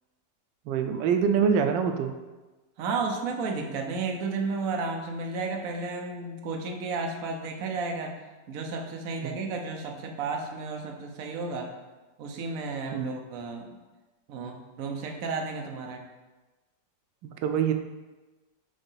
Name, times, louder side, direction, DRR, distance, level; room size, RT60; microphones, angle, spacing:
voice 1, 0.7-2.1 9.2-9.4 12.9-13.1 17.2-17.7, right 7 dB, 85° right, 6 dB, 1.3 m, -25 dB
voice 2, 2.8-8.2 8.5-11.7 12.2-13.8 14.3-16.1, right 4 dB, 60° right, 2 dB, 1.1 m, -33 dB
5.3 x 3.8 x 5.6 m, 1.2 s
omnidirectional pair, 1.9 m